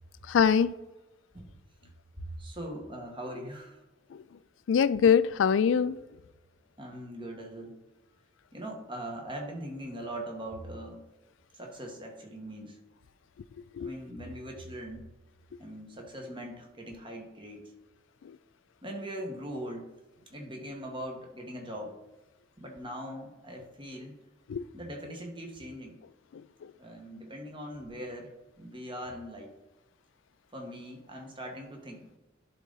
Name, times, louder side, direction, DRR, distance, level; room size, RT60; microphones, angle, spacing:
voice 1, 0.3-0.7 4.7-6.0 13.8-13.9 24.5-24.6, left 7 dB, 70° left, 0.3 m, -23 dB
voice 2, 2.2-3.8 6.8-7.8 8.5-11.0 11.5-12.8 13.8-15.1 15.6-17.7 18.8-19.9 20.2-22.0 22.6-24.2 24.7-26.0 26.8-29.5 30.5-32.0, equal, 25° right, 1.4 m, -41 dB
11.0 x 3.9 x 4.0 m
head